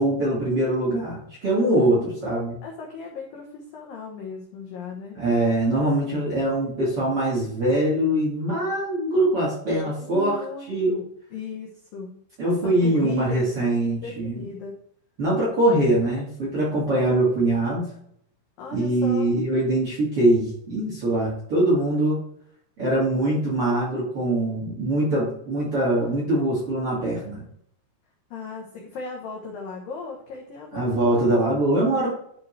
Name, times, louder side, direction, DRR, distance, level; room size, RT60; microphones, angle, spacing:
voice 1, 0.0-2.6 5.1-11.0 12.4-14.4 15.2-17.9 18.7-22.2 22.8-27.4 30.7-32.1, right 1 dB, 40° right, -6 dB, 2.1 m, -23 dB
voice 2, 1.7-2.3 2.6-5.2 9.8-14.8 18.6-19.3 28.3-31.8, left 5 dB, 80° left, -1 dB, 2.0 m, -37 dB
11.0 x 5.0 x 3.2 m, 0.69 s
omnidirectional pair, 5.5 m